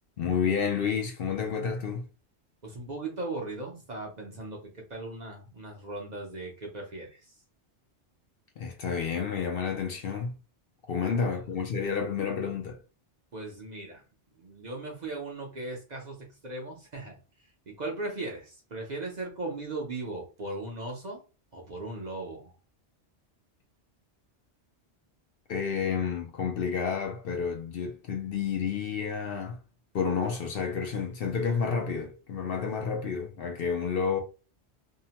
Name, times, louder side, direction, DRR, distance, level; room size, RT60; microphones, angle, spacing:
voice 1, 0.2-2.0 8.6-10.3 10.9-12.8 25.5-29.6 29.9-34.2, left 6 dB, 60° left, 0.7 m, -30 dB
voice 2, 2.6-7.3 11.0-11.4 13.3-14.0 14.4-17.2 17.7-21.2 21.5-22.5, right 2 dB, 45° right, 0.7 m, -38 dB
2.8 x 2.1 x 2.8 m
omnidirectional pair, 1.2 m